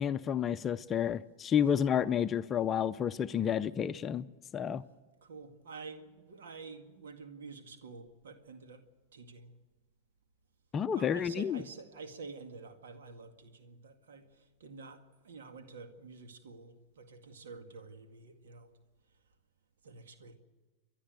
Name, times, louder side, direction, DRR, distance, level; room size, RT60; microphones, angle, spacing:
voice 1, 0.0-4.3 4.5-4.8 10.7-11.6, left 8 dB, 30° left, 0.6 m, -30 dB
voice 2, 5.2-8.8 9.1-9.5 10.9-18.7 19.8-20.3, right 4 dB, 80° right, 2.0 m, -49 dB
29.5 x 11.5 x 7.8 m
hypercardioid pair, 105°, 0 cm